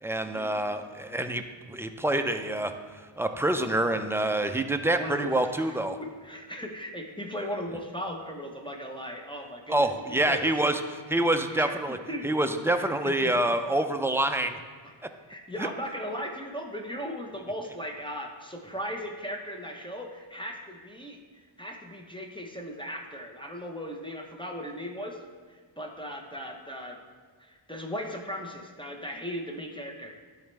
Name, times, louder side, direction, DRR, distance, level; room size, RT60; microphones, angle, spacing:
voice 1, 0.0-1.4 1.7-2.7 3.2-6.0 9.7-10.8 11.1-12.0 12.2-14.6 15.6-15.7, right 1 dB, 5° right, 6 dB, 0.4 m, -26 dB
voice 2, 5.0-10.5 11.5-11.8 12.1-12.3 12.7-13.3 14.8-14.9 15.3-21.2 21.6-25.2 25.5-27.0 27.4-30.1, equal, 10° left, 1 dB, 0.8 m, -37 dB
11.5 x 4.1 x 3.3 m, 1.5 s
wide cardioid pair, 65°, 50 cm